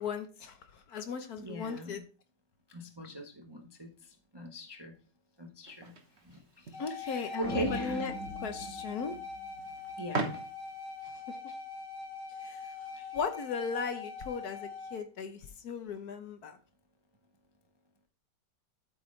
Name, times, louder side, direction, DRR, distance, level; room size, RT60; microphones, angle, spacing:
voice 1, 0.0-2.0 6.8-9.1 11.0-11.5 12.3-12.9 13.1-16.6, left 6 dB, 60° left, 8 dB, 1.3 m, -38 dB
voice 2, 1.4-1.9 2.7-3.9 4.3-4.9 5.4-5.9 7.0-8.0 10.0-10.3 13.0-13.1, equal, 25° right, 3 dB, 0.6 m, -39 dB
sound 1, 5.6-11.0, right 3 dB, 40° right, 1.3 m, -42 dB
sound 2, 6.7-15.0, left 4 dB, 15° left, 1.3 m, -43 dB
sound 3, 7.4-9.9, right 2 dB, 85° right, 2.3 m, -41 dB
8.6 x 8.6 x 3.2 m, 0.36 s
omnidirectional pair, 2.0 m